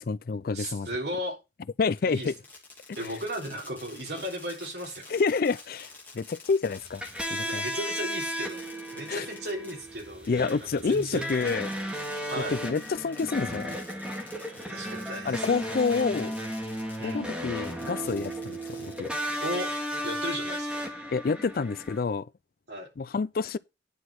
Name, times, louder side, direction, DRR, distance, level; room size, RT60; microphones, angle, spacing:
voice 1, 0.0-0.9 1.8-2.4 5.1-7.0 7.3-7.7 9.1-9.3 10.3-11.7 12.5-13.8 15.3-16.4 17.0-19.1 21.1-22.3 23.0-23.6, left 4 dB, 55° left, 0.4 m, -28 dB
voice 2, 0.5-1.4 2.0-2.3 3.0-5.1 7.4-8.6 8.9-11.3 12.3-12.6 14.5-15.6 17.0-17.2 19.4-19.7 20.0-20.8 22.7-22.9, right 1 dB, 65° right, 3.6 m, -35 dB
Fireworks, 1.9-17.2 17.6-19.4, left 3 dB, 10° left, 2.8 m, -49 dB
sound 1, 6.8-22.0, equal, 5° right, 2.1 m, -35 dB
10.0 x 6.0 x 4.6 m
head